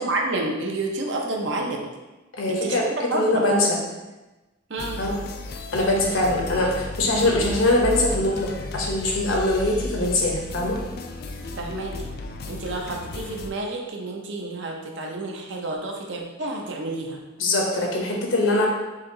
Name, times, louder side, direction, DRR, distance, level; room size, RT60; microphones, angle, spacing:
voice 1, 0.0-1.9 2.5-3.5 4.7-5.0 11.6-12.1 12.5-17.2, right 2 dB, 60° right, 0 dB, 0.7 m, -29 dB
voice 2, 2.4-2.9 3.1-3.8 5.0-5.1 5.7-10.8 17.4-18.7, left 1 dB, 75° left, -1 dB, 0.9 m, -22 dB
sound 1, 4.8-13.5, left 2 dB, 50° left, 0.3 m, -34 dB
4.2 x 2.9 x 3.7 m, 1.1 s
head